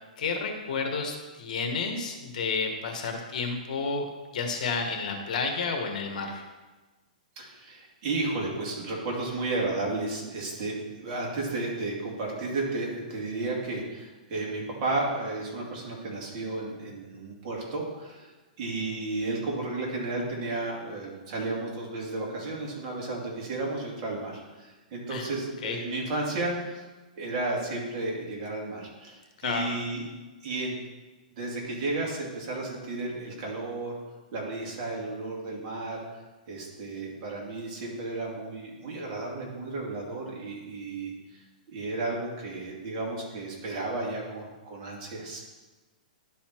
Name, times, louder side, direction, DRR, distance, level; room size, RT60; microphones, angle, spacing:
voice 1, 0.2-4.1 4.3-6.4 25.1-25.3 25.6-25.8 29.4-29.7, left 4 dB, 60° left, 4 dB, 1.4 m, -31 dB
voice 2, 7.4-18.3 18.6-26.8 27.2-30.0 30.4-30.7 31.4-33.9 34.3-36.0 36.5-41.4 41.7-45.4, right 2 dB, 40° right, -3 dB, 2.6 m, -33 dB
11.5 x 4.2 x 4.5 m, 1.2 s
hypercardioid pair, 145°, 5 cm